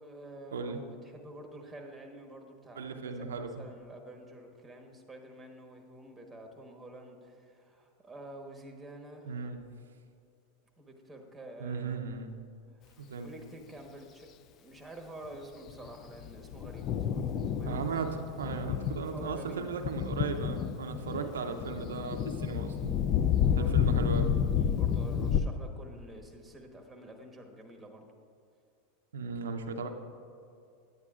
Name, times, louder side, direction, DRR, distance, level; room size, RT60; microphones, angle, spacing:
voice 1, 0.0-9.3 10.8-12.0 12.7-14.3 14.6-17.9 19.1-19.6 21.1-21.3 23.5-23.9 24.5-28.0, right 1 dB, 10° right, 3 dB, 1.2 m, -48 dB
voice 2, 2.8-3.6 9.3-9.6 11.6-12.3 13.0-13.3 17.7-18.1 18.4-22.9 23.5-24.3 29.1-29.9, right 5 dB, 90° right, 5 dB, 0.5 m, -36 dB
Thunder, 15.7-25.4, left 8 dB, 40° left, 0.4 m, -30 dB
9.6 x 9.4 x 2.4 m, 2.4 s
hypercardioid pair, 105°, 0 cm